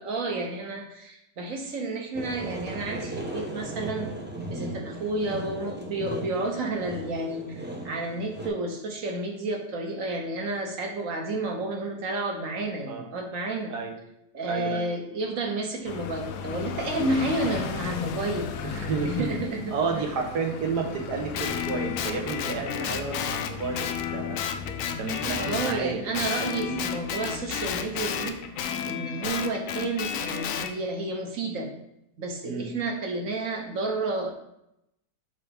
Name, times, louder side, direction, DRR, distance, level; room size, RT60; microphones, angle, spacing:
voice 1, 0.0-4.1 4.5-13.7 14.3-19.7 25.4-28.4 28.9-31.7 32.2-34.3, right 2 dB, 60° right, 2 dB, 1.3 m, -31 dB
sound 1, 2.1-8.5, right 1 dB, 10° right, 0.5 m, -37 dB
voice 2, 14.5-14.8 18.6-19.3 19.7-24.4 25.0-26.0 26.6-26.8 32.4-32.6, right 5 dB, 85° right, 2 dB, 1.6 m, -31 dB
sound 2, 15.8-28.4, left 6 dB, 90° left, 1.2 m, -38 dB
Guitar, 21.3-25.8 26.1-30.7, left 8 dB, 70° left, 0.9 m, -32 dB
7.0 x 4.5 x 3.5 m, 0.81 s
omnidirectional pair, 1.7 m